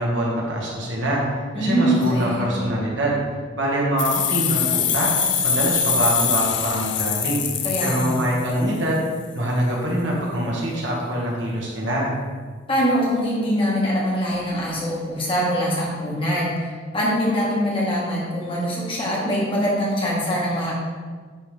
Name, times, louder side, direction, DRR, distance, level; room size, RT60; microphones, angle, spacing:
voice 1, 0.0-3.2 3.6-5.1 5.4-7.4 7.8-9.0 9.3-12.1, right 1 dB, 65° right, -4 dB, 1.8 m, -24 dB
voice 2, 1.5-2.5 7.6-8.1 12.7-20.7, equal, 30° left, -5 dB, 1.7 m, -23 dB
sound 1, 4.0-8.8, left 7 dB, 65° left, 0.6 m, -23 dB
9.9 x 3.9 x 3.4 m, 1.5 s
head